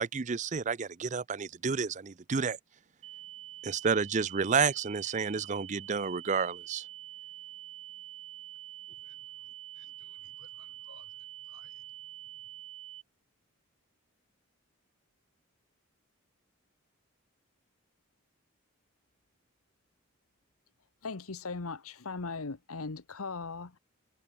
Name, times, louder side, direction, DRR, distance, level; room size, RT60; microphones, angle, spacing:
voice 1, 0.0-2.6 3.6-6.8, right 5 dB, 35° right, 0.5 m, -30 dB
sound 1, 3.0-13.0, right 13 dB, 65° right, 6.8 m, -46 dB
voice 2, 8.9-11.9 12.2-12.6, left 3 dB, 65° left, 7.8 m, -63 dB
voice 3, 21.0-23.8, left 4 dB, 85° left, 1.1 m, -38 dB
head